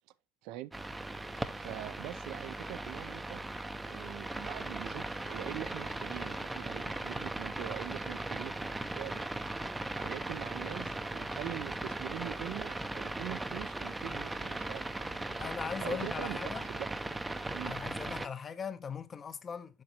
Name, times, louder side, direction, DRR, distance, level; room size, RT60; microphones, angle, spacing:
sound 1, 0.7-18.3, right 2 dB, 10° right, 0.6 m, -38 dB
voice 1, 1.5-3.4 3.8-9.3 9.9-15.3 15.8-16.4 16.7-16.8 17.5-17.8, right 15 dB, 65° right, 0.5 m, -43 dB
voice 2, 15.4-16.7 17.6-19.8, left 6 dB, 30° left, 0.7 m, -40 dB
7.6 x 6.2 x 2.9 m
supercardioid pair, 110°, 0 cm